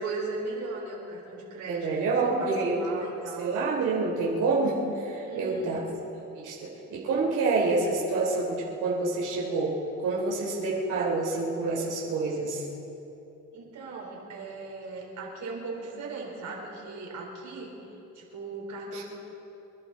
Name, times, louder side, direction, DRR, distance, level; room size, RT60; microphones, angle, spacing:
voice 1, 0.0-3.6 5.2-5.8 13.5-17.7 18.1-19.0, right 3 dB, 70° right, -2 dB, 4.7 m, -38 dB
voice 2, 1.7-2.9 3.4-5.8 6.3-9.7 10.0-12.6 18.9-19.0, right 3 dB, 85° right, -4 dB, 3.6 m, -27 dB
28.0 x 11.5 x 4.3 m, 2.9 s
cardioid pair, 90°, 30 cm